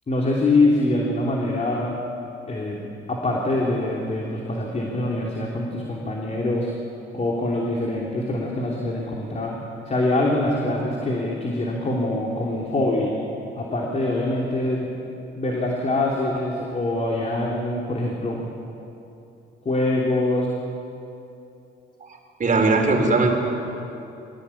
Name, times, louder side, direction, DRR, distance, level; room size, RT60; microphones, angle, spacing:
voice 1, 0.1-2.0 2.5-2.8 3.1-6.7 7.1-9.5 9.8-13.1 13.5-14.9 15.3-18.4 19.6-20.5, left 2 dB, 35° left, -2 dB, 3.3 m, -24 dB
voice 2, 22.4-23.4, right 3 dB, 40° right, 3 dB, 4.1 m, -19 dB
22.5 x 17.5 x 8.7 m, 2.8 s
cardioid pair, 90°, 20 cm